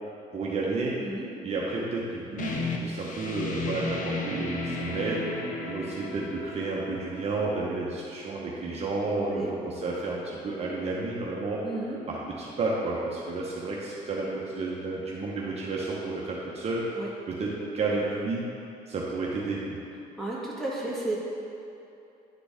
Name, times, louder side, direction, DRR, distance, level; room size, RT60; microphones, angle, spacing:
voice 1, 0.3-0.9 1.4-2.5 2.8-5.2 5.7-11.6 12.1-16.8 17.3-18.4 18.9-19.8, right 3 dB, 40° right, -4 dB, 0.9 m, -31 dB
sound 1, 2.4-7.8, left 3 dB, 50° left, 0.8 m, -34 dB
voice 2, 9.2-9.5 11.6-12.0 16.9-17.1 20.2-21.2, right 2 dB, ahead, -6 dB, 1.5 m, -33 dB
9.8 x 3.9 x 3.5 m, 2.8 s
cardioid pair, 110°, 17 cm